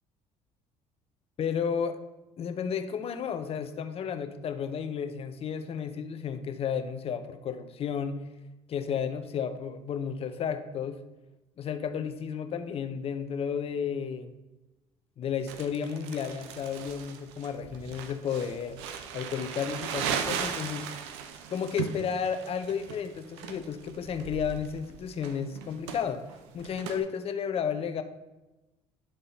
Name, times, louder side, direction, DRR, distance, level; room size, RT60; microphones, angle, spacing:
voice 1, 1.4-2.0 2.4-8.2 8.7-11.0 11.6-14.3 15.2-18.8 19.1-20.9 21.5-26.2 26.5-28.0, left 7 dB, 45° left, 7 dB, 0.7 m, -32 dB
Crumpling crinkling, 15.5-27.0, right 7 dB, 85° right, 0.6 m, -37 dB
10.0 x 3.7 x 4.0 m, 1.0 s
supercardioid pair, 75°, 14 cm